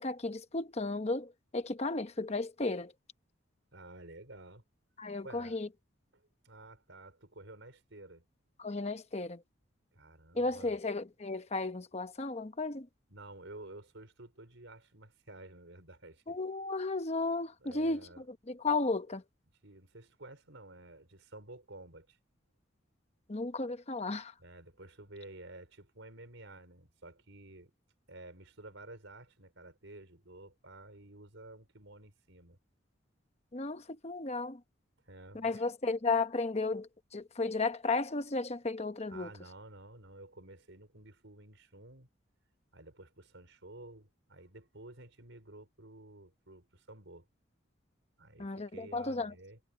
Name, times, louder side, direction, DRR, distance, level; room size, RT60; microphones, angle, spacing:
voice 1, 0.0-2.9 5.0-5.7 8.6-9.4 10.3-12.9 16.3-18.1 18.5-19.2 23.3-24.3 33.5-34.6 35.3-39.3 48.4-49.3, left 3 dB, 35° left, 0.9 m, -34 dB
voice 2, 3.7-4.6 5.2-5.6 6.1-8.2 9.9-10.8 13.1-16.4 17.6-18.2 19.6-22.2 24.4-27.7 28.1-32.6 35.0-35.6 39.1-42.1 42.7-47.3 48.2-49.6, right 2 dB, 70° right, 4.9 m, -52 dB
head